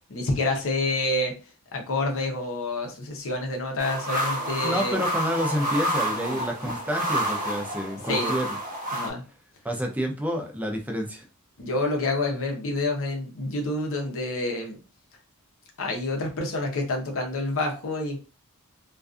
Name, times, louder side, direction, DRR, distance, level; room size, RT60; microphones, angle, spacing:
voice 1, 0.1-1.3 1.7-5.0 6.2-6.4 8.1-8.4 8.9-9.2 11.6-14.8 15.8-18.2, left 2 dB, 65° left, 2 dB, 0.7 m, -28 dB
sound 1, 3.8-9.1, right 1 dB, 35° right, 0.8 m, -29 dB
voice 2, 4.6-8.6 9.6-11.2, equal, 5° right, 2 dB, 0.4 m, -29 dB
2.5 x 2.3 x 2.4 m, 0.32 s
head